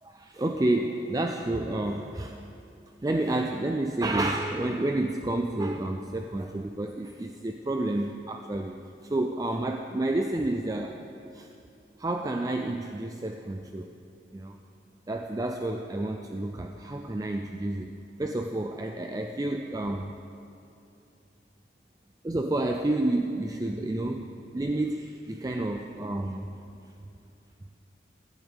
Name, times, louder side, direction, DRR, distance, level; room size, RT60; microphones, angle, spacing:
voice 1, 0.0-2.5 3.0-8.8 9.0-11.0 11.3-11.5 12.0-13.9 14.3-14.6 15.1-17.9 18.2-20.2 22.2-26.5, right 2 dB, 20° right, 4 dB, 0.4 m, -30 dB
16.5 x 11.5 x 3.6 m, 2.7 s
head